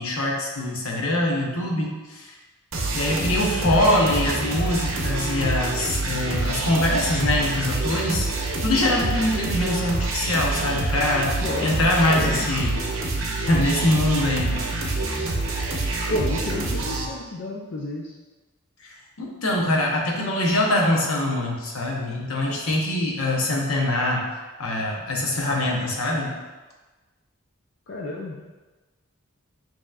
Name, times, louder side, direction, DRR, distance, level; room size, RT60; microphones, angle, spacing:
voice 1, 0.0-2.3 2.9-8.3 8.6-11.3 11.6-12.8 13.5-14.6 18.8-24.3 24.6-26.4, left 1 dB, 85° left, -1 dB, 0.9 m, -23 dB
sound 1, 2.7-17.1, right 2 dB, 70° right, 0.7 m, -26 dB
voice 2, 11.4-11.7 12.1-12.5 16.1-18.1 27.9-28.4, left 1 dB, 55° left, -3 dB, 0.5 m, -30 dB
6.5 x 2.9 x 2.4 m, 1.2 s
head